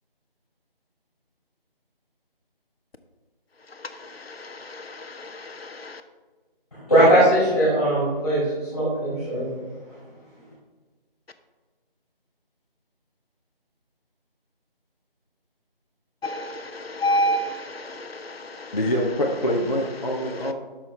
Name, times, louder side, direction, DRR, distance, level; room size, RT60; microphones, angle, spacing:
voice 1, 4.4-5.9 16.2-18.7, equal, 85° left, 9 dB, 0.8 m, -29 dB
voice 2, 6.9-9.4, right 1 dB, 25° left, -9 dB, 2.6 m, -19 dB
voice 3, 18.7-20.5, equal, 40° left, -2 dB, 0.8 m, -25 dB
9.2 x 6.3 x 3.2 m, 1.4 s
figure-of-eight pair, 180°, 30 cm